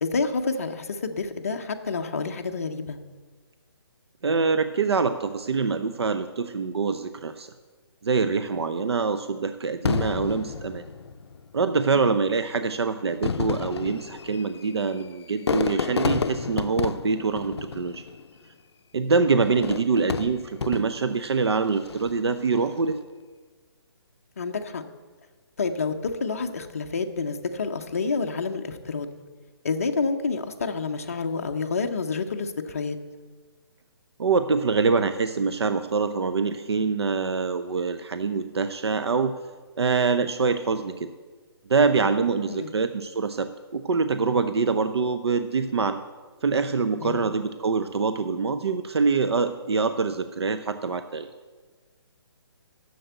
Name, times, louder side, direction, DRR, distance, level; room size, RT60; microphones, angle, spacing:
voice 1, 0.0-3.0 12.0-12.2 24.4-24.8 25.6-25.9 26.2-29.1 29.6-33.0 42.5-42.7 47.0-47.2, left 4 dB, 35° left, 5 dB, 0.6 m, -28 dB
voice 2, 4.2-7.5 8.0-10.8 11.5-18.0 18.9-23.0 34.2-39.3 39.8-41.1 41.7-46.0 46.4-51.3, right 4 dB, 75° right, 10 dB, 0.6 m, -25 dB
Fireworks, 9.9-11.5 12.3-12.4 13.1-18.4 19.4-21.2 21.8-22.3, left 6 dB, 75° left, 0.5 m, -30 dB
7.7 x 6.8 x 8.0 m, 1.4 s
hypercardioid pair, 180°, 14 cm